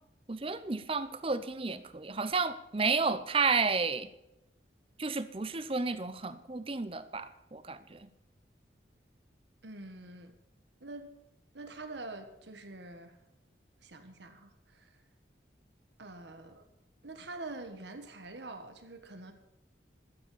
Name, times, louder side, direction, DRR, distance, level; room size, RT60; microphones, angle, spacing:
voice 1, 0.3-4.1 5.0-8.1, right 4 dB, 30° right, 13 dB, 0.7 m, -32 dB
voice 2, 9.6-10.3 10.8-11.1 11.5-13.2 13.8-14.9 16.0-16.6 17.0-19.3, right 2 dB, 70° right, 7 dB, 1.5 m, -45 dB
12.5 x 7.6 x 8.5 m, 0.88 s
head